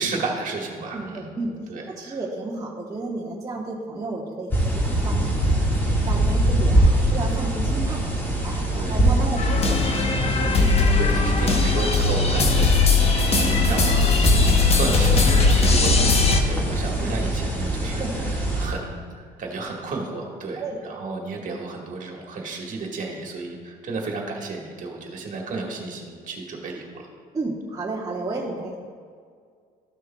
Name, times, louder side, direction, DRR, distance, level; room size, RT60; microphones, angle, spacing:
voice 1, 0.0-1.3 1.7-2.2 6.2-6.4 8.7-9.0 10.6-13.1 13.4-27.1, right 3 dB, 50° right, 0 dB, 1.6 m, -32 dB
voice 2, 0.9-1.5 1.9-5.3 5.6-8.0 8.4-10.0 10.4-10.6 16.0-16.1 17.0-17.1 17.9-18.6 20.6-20.8 27.3-28.8, right 2 dB, 20° right, -3 dB, 1.0 m, -32 dB
sound 1, 4.5-18.7, right 1 dB, 10° left, 1.7 m, -24 dB
sound 2, 9.4-16.4, left 4 dB, 35° left, 0.9 m, -19 dB
13.5 x 6.5 x 2.3 m, 2.1 s
cardioid pair, 110°, 17 cm